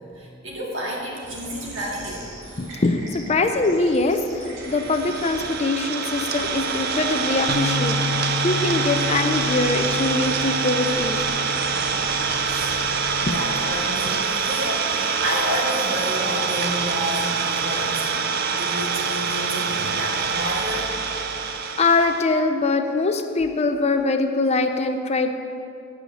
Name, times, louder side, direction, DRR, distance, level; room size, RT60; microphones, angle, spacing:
voice 1, 0.2-2.3 12.5-12.8 13.3-20.9, equal, 70° right, -2 dB, 2.1 m, -30 dB
sound 1, 1.2-15.8, right 1 dB, 90° right, 2.2 m, -40 dB
voice 2, 2.6-11.2 13.3-13.4 17.7-17.8 21.8-25.4, left 3 dB, 35° left, 6 dB, 0.6 m, -23 dB
Idling, 4.6-22.3, right 5 dB, 55° right, 0.6 m, -25 dB
Bass guitar, 7.5-13.7, left 4 dB, 75° left, 0.7 m, -31 dB
8.0 x 6.4 x 7.7 m, 2.5 s
head